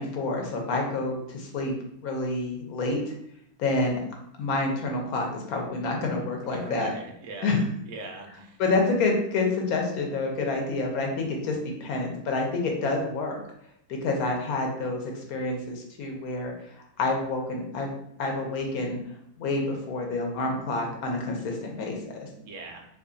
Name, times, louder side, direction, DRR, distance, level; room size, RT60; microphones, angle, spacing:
voice 1, 0.0-1.7 2.0-3.1 3.6-4.0 4.4-6.9 7.4-7.6 8.6-13.4 13.9-16.5 17.0-17.9 18.2-19.0 19.4-22.3, left 3 dB, 75° left, 1 dB, 1.2 m, -28 dB
voice 2, 6.4-7.5 7.9-8.6 22.4-22.9, right 2 dB, 65° right, 2 dB, 0.8 m, -40 dB
3.0 x 2.3 x 3.8 m, 0.73 s
omnidirectional pair, 1.6 m